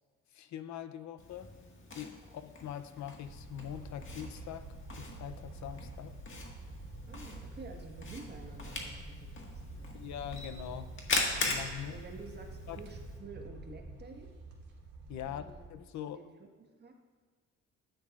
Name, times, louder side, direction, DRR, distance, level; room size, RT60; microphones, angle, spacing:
voice 1, 0.3-1.5 1.9-6.1 9.9-10.9 11.4-12.0 12.7-12.8 15.1-15.4 15.7-16.2, left 10 dB, 70° left, 11 dB, 0.7 m, -43 dB
Camera, 1.2-13.2, left 2 dB, 40° left, 1.8 m, -41 dB
sound 1, 3.2-15.7, right 2 dB, 65° right, 2.2 m, -47 dB
voice 2, 7.1-10.1 11.9-14.3 15.1-15.6 16.1-16.9, right 3 dB, 35° right, 2 dB, 1.5 m, -50 dB
13.0 x 9.3 x 2.5 m, 1.6 s
cardioid pair, 90°, 30 cm